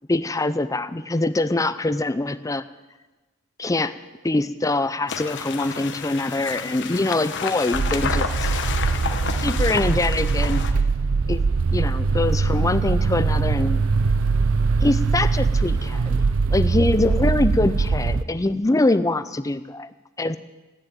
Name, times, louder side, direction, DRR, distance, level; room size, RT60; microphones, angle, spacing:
voice 1, 0.1-2.6 3.6-3.9 4.2-8.7 9.4-10.6 11.3-11.4 11.7-13.8 14.8-20.4, left 2 dB, 15° left, 13 dB, 0.5 m, -24 dB
sound 1, 5.1-10.7, left 5 dB, 55° left, 1.1 m, -30 dB
sound 2, 7.7-18.2, right 4 dB, 65° right, 0.6 m, -22 dB
14.5 x 9.4 x 9.1 m, 1.2 s
head